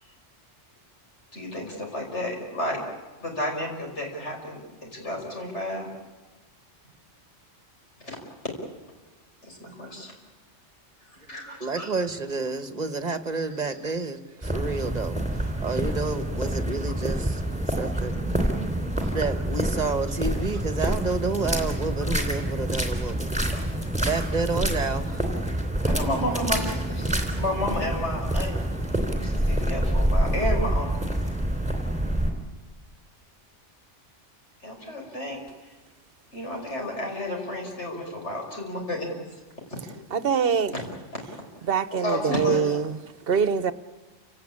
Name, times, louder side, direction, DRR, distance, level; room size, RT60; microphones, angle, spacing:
voice 1, 1.3-2.8 3.2-5.9 8.0-8.2 9.4-10.2 11.1-11.9 13.5-13.6 19.0-19.1 25.8-28.5 29.1-30.9 34.6-35.7 36.3-39.1 39.7-39.8 40.7-41.2 41.9-42.8, left 1 dB, 70° left, 1 dB, 5.7 m, -32 dB
voice 2, 11.6-15.2 15.6-18.2 19.1-23.3 24.0-25.2, right 3 dB, 35° right, 10 dB, 1.3 m, -29 dB
sound 1, 14.4-32.3, right 1 dB, 5° right, 3.6 m, -27 dB
voice 3, 40.1-40.7 41.7-43.0 43.3-43.7, right 6 dB, 55° right, 14 dB, 1.1 m, -23 dB
29.0 x 17.5 x 8.7 m, 1.2 s
omnidirectional pair, 1.2 m